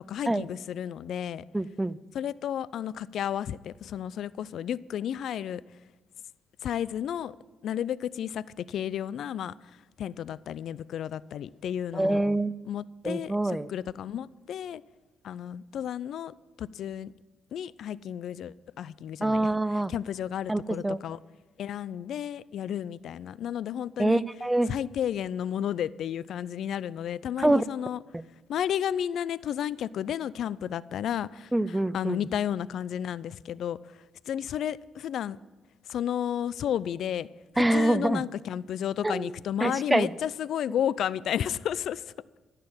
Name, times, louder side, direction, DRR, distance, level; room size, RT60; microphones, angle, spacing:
voice 1, 0.1-1.4 2.1-5.6 6.6-7.3 7.6-9.5 10.0-12.2 12.6-14.8 15.2-17.1 17.5-21.2 21.6-24.2 24.7-28.0 28.5-33.8 34.3-35.4 35.9-37.3 37.5-42.0, left 9 dB, 70° left, 20 dB, 0.4 m, -32 dB
voice 2, 1.5-2.0 11.9-12.6 13.0-13.7 19.2-19.9 20.5-21.0 24.0-24.7 27.4-27.6 28.1-28.3 31.5-32.2 37.6-38.2 39.0-39.3 39.6-40.1, right 1 dB, 10° right, 19 dB, 0.4 m, -25 dB
14.5 x 6.7 x 8.8 m, 1.2 s
cardioid pair, 90°, 0 cm